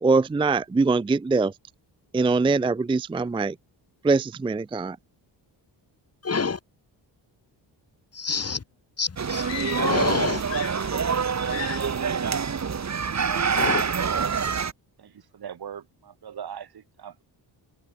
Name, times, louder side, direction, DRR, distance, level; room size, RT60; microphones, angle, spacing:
voice 1, 0.0-1.5 2.1-3.6 4.0-5.0, right 3 dB, 10° right, 0.4 m, -22 dB
voice 2, 6.2-6.6 8.1-8.6 9.0-9.4 9.7-10.4 13.5-13.8, left 5 dB, 35° left, 6.3 m, -27 dB
sound 1, 9.2-14.7, right 6 dB, 35° right, 3.0 m, -26 dB
sound 2, 9.4-10.1 10.4-11.2 11.5-12.0, left 12 dB, 75° left, 2.8 m, -37 dB
voice 3, 13.0-14.3 15.0-17.2, right 8 dB, 55° right, 6.1 m, -40 dB
cardioid pair, 110°, 44 cm